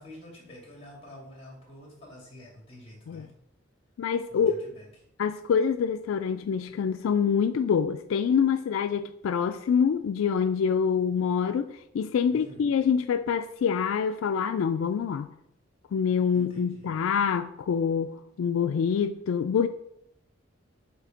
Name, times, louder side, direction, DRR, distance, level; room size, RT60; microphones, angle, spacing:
voice 1, 0.0-3.3 4.3-4.9 12.3-12.6 16.3-16.9, left 1 dB, 30° left, -2 dB, 2.3 m, -48 dB
voice 2, 4.0-4.6 5.2-11.7 11.9-15.3 15.9-18.1 18.4-19.7, left 6 dB, 90° left, 10 dB, 0.3 m, -26 dB
7.6 x 2.8 x 5.0 m, 0.76 s
head